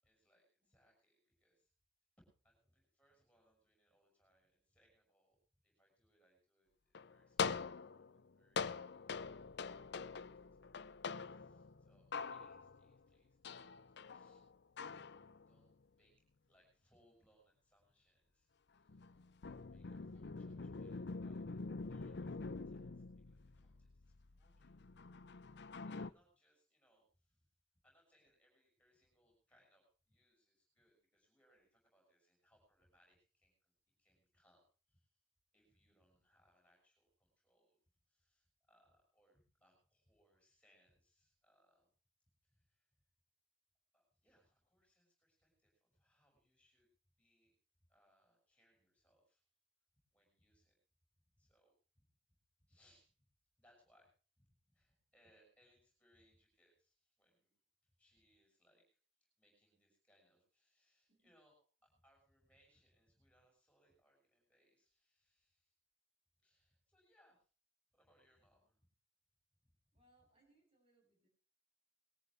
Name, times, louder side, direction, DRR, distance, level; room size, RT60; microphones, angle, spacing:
voice 1, 0.0-1.7 2.2-5.4 5.6-8.7 8.9-14.4 15.2-16.2 16.5-24.7 25.8-27.5 27.8-35.1 35.5-37.8 38.1-41.9 42.4-42.9 43.9-46.9 47.2-47.5 47.9-49.5 50.1-50.8 51.4-52.1 52.6-53.1 53.6-54.1 54.4-57.5 57.8-58.9 59.2-65.7 66.4-67.5 67.9-68.9 69.9-70.3, equal, 5° left, -1 dB, 6.3 m, -75 dB
sound 1, 7.0-13.0 13.4-15.7 18.9-26.1, left 5 dB, 60° left, 0.6 m, -45 dB
voice 2, 69.9-71.3, right 2 dB, 30° right, 0 dB, 8.0 m, -74 dB
20.5 x 14.0 x 3.5 m, 0.38 s
head